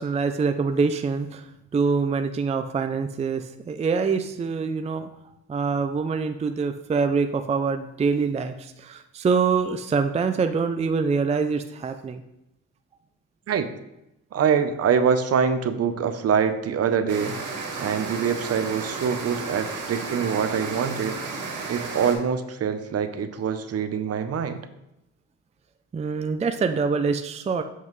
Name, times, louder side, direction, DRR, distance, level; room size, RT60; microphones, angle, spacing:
voice 1, 0.0-1.5 1.7-5.1 5.5-12.2 25.9-27.6, right 5 dB, 20° right, 7 dB, 0.4 m, -25 dB
voice 2, 14.3-17.4 17.8-21.2 21.7-24.7, right 7 dB, 55° right, 9 dB, 0.7 m, -24 dB
sound 1, 17.1-22.1, right 4 dB, 90° right, 1.8 m, -33 dB
7.4 x 5.5 x 3.1 m, 0.88 s
cardioid pair, 90°, 30 cm